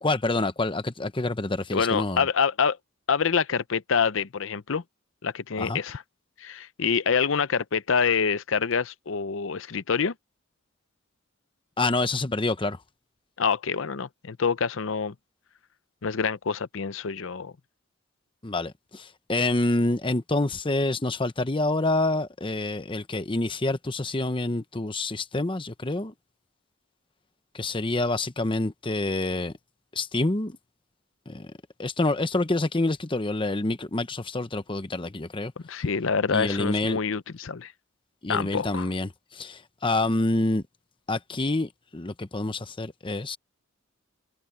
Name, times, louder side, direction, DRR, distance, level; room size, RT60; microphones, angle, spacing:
voice 1, 0.0-2.2 5.6-5.8 11.8-12.8 18.4-26.1 27.5-29.5 29.9-30.6 31.3-31.5 31.8-35.5 36.3-37.0 38.2-40.6 41.1-43.4, left 2 dB, 25° left, 0.9 m, -27 dB
voice 2, 1.7-2.8 3.1-4.8 5.2-6.0 6.4-10.1 13.4-15.1 16.0-17.5 35.6-37.7 38.3-38.9, left 6 dB, 65° left, 0.6 m, -26 dB
head